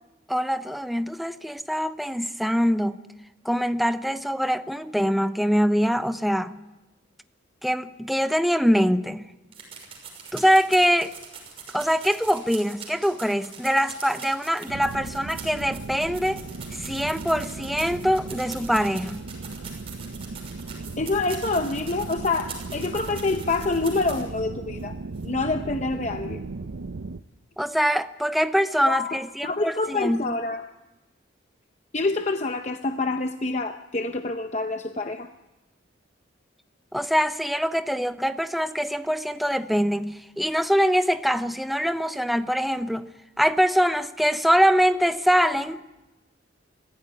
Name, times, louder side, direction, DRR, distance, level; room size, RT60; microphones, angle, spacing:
voice 1, 0.3-3.0 3.4-6.6 7.6-9.3 10.3-11.1 11.7-16.4 16.8-19.3 27.6-30.4 36.9-43.1 43.4-45.8, equal, ahead, 0.7 m, -23 dB
sound 1, 9.5-24.4 24.8-24.9 25.2-25.3, right 6 dB, 30° right, 5.9 m, -42 dB
sound 2, 14.7-27.2, right 3 dB, 80° right, 0.7 m, -37 dB
voice 2, 21.0-24.9 25.2-26.4 28.9-30.6 31.9-35.3, left 3 dB, 35° left, 0.7 m, -27 dB
23.5 x 15.5 x 9.7 m
head